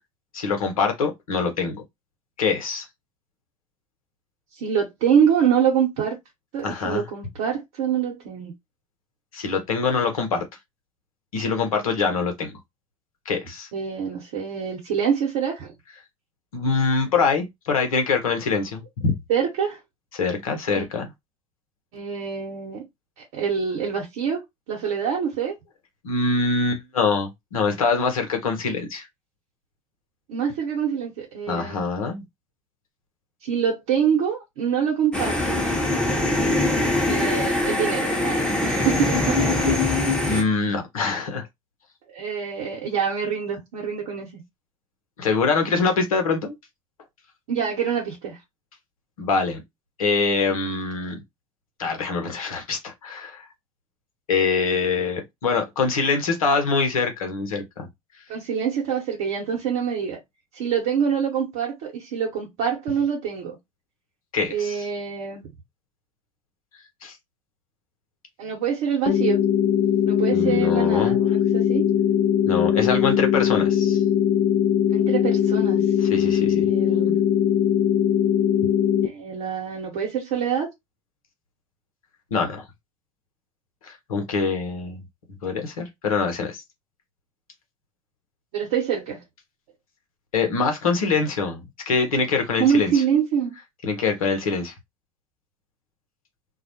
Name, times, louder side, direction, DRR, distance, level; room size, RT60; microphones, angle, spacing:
voice 1, 0.3-1.8 2.4-2.8 6.6-7.0 9.3-10.4 11.3-12.6 13.3-13.7 16.5-19.1 20.1-21.1 26.0-29.1 31.5-32.2 40.3-41.5 45.2-46.6 49.2-49.6 50.0-51.2 51.8-53.5 54.3-57.9 64.3-64.8 67.0-67.2 70.3-71.2 72.4-74.0 76.0-76.7 82.3-82.6 83.8-85.0 85.4-86.6 90.3-93.0 93.8-94.7, left 4 dB, 80° left, 0.8 m, -24 dB
voice 2, 4.6-6.2 6.5-8.5 13.7-15.7 19.3-19.8 20.7-20.9 21.9-22.8 23.3-24.4 24.7-25.5 30.3-31.9 33.4-35.7 37.1-39.8 42.1-44.4 47.5-48.4 58.3-60.2 60.5-63.6 64.5-65.4 68.4-69.4 70.0-71.8 74.9-75.8 76.7-77.2 79.0-80.7 88.5-89.2 92.6-93.5, right 7 dB, 60° right, 0.9 m, -25 dB
sound 1, 35.1-40.4, left 2 dB, 5° left, 0.8 m, -22 dB
sound 2, 69.1-79.1, left 9 dB, 45° left, 0.5 m, -20 dB
2.3 x 2.0 x 2.8 m
figure-of-eight pair, 70°, 18 cm